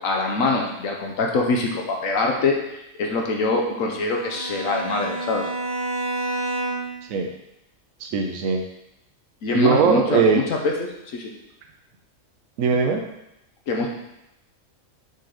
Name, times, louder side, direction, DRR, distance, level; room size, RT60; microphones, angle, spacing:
voice 1, 0.0-5.5 9.4-11.3 13.7-13.9, left 3 dB, 75° left, 1 dB, 1.3 m, -24 dB
Bowed string instrument, 3.9-7.0, right 2 dB, 50° right, 2.5 m, -29 dB
voice 2, 8.0-8.6 9.5-10.4 12.6-13.0, right 5 dB, 75° right, 3 dB, 1.1 m, -20 dB
6.8 x 3.9 x 4.9 m, 0.85 s
omnidirectional pair, 1.4 m